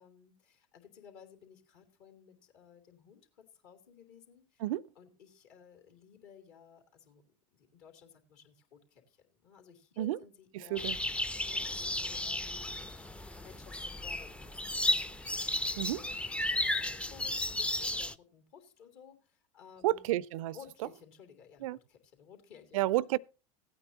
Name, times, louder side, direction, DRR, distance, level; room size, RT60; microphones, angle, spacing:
voice 1, 0.0-4.6 4.9-7.2 7.5-10.9 11.4-15.1 15.4-20.2 20.5-22.8, left 8 dB, 60° left, 2.9 m, -57 dB
voice 2, 10.6-11.0 15.8-16.0 19.8-20.5 21.6-21.8 22.7-23.2, right 16 dB, 70° right, 0.4 m, -30 dB
sound 1, 10.8-18.1, left 1 dB, 5° left, 0.4 m, -34 dB
16.5 x 8.9 x 2.8 m
hypercardioid pair, 90°, 18 cm